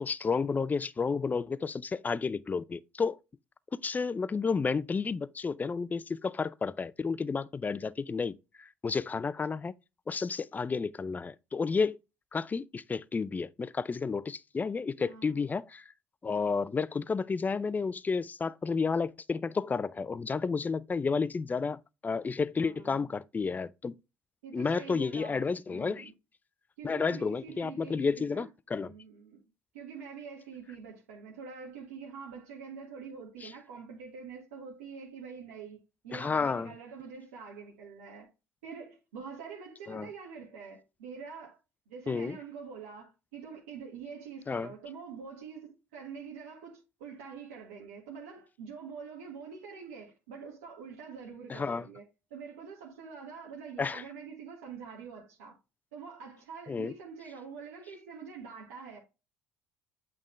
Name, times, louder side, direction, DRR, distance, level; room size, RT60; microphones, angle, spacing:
voice 1, 0.0-3.2 3.7-9.7 10.1-12.0 12.3-15.8 16.2-23.9 24.5-26.1 26.8-28.9 33.4-33.5 36.1-36.7 39.9-40.1 42.1-42.4 44.5-44.7 51.5-51.9 53.8-54.0 56.7-56.9, left 5 dB, 25° left, 0.4 m, -31 dB
voice 2, 15.0-15.5 22.6-23.1 24.4-26.1 26.8-28.5 28.8-29.4 29.7-38.3 38.6-41.6 41.9-52.0 52.3-55.6 55.9-59.0, right 6 dB, 75° right, 1.5 m, -45 dB
8.3 x 3.7 x 3.1 m
figure-of-eight pair, 55°, 7 cm